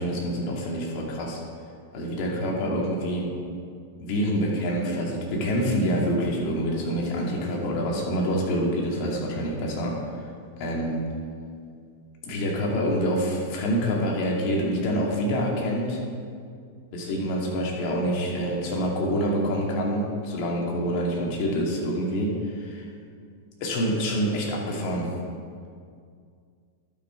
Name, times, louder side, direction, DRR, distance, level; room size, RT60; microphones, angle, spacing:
voice 1, 0.0-1.4 1.9-3.3 4.0-10.0 10.6-11.0 12.2-16.0 16.9-22.9 23.6-25.1, equal, 50° left, -2 dB, 2.4 m, -26 dB
11.5 x 6.2 x 4.6 m, 2.2 s
hypercardioid pair, 105°, 0 cm